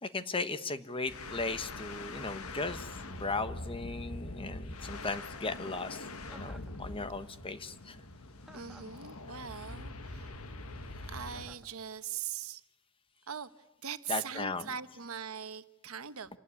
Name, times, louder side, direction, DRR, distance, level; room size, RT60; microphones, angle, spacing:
voice 1, 0.0-8.0 14.1-14.7, left 3 dB, 25° left, 11 dB, 1.2 m, -37 dB
sound 1, 1.0-11.6, left 2 dB, 80° left, 1.6 m, -44 dB
Chuckle chortle, 6.3-6.8 8.4-9.0 11.3-11.7, right 1 dB, ahead, 1.5 m, -54 dB
voice 2, 8.5-10.4 10.9-12.6 13.3-16.4, right 8 dB, 80° right, 11 dB, 1.2 m, -41 dB
28.0 x 18.5 x 9.9 m, 1.0 s
head